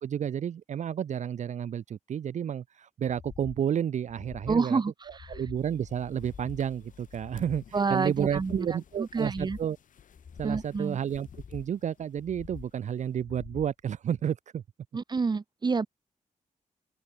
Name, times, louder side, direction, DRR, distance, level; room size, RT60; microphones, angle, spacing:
voice 1, 0.0-4.8 5.3-9.8 10.4-14.6, right 9 dB, 65° right, 0.6 m, -31 dB
sound 1, 3.1-3.6 4.0-4.6 5.1-5.6 6.1-6.7 7.1-7.7 8.1-8.7 9.1-9.7 10.1-10.7 11.1-11.7 12.1-12.7 13.1-13.7 14.1-14.2, left 6 dB, 50° left, 3.1 m, -46 dB
voice 2, 4.5-5.4 7.7-9.6 10.4-11.0 14.9-15.9, right 4 dB, 35° right, 1.1 m, -29 dB
sound 2, 5.5-13.2, left 8 dB, 80° left, 3.1 m, -55 dB
open air
wide cardioid pair, 110°, 13 cm